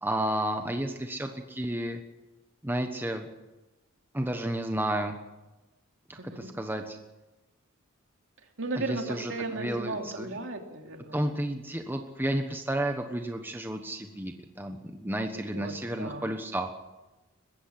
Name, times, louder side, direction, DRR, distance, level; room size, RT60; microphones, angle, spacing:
voice 1, 0.0-2.0 2.6-3.3 4.1-5.2 6.1-7.0 8.8-10.3 11.1-16.7, right 1 dB, 10° right, 5 dB, 1.2 m, -32 dB
voice 2, 6.2-6.5 8.6-11.4 15.5-16.3, right 2 dB, 60° right, 3 dB, 3.0 m, -36 dB
21.5 x 15.5 x 7.8 m, 1.1 s
head